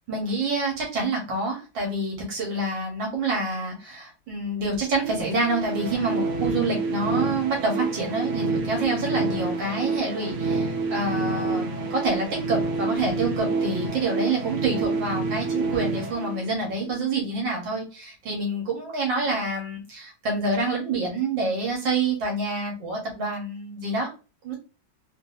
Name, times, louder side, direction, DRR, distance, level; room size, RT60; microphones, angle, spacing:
voice 1, 0.1-24.1 24.4-24.6, right 2 dB, 75° right, 0 dB, 1.9 m, -27 dB
sound 1, 5.0-16.9, right 3 dB, 60° right, 0.8 m, -28 dB
3.8 x 2.7 x 2.3 m, 0.31 s
omnidirectional pair, 2.1 m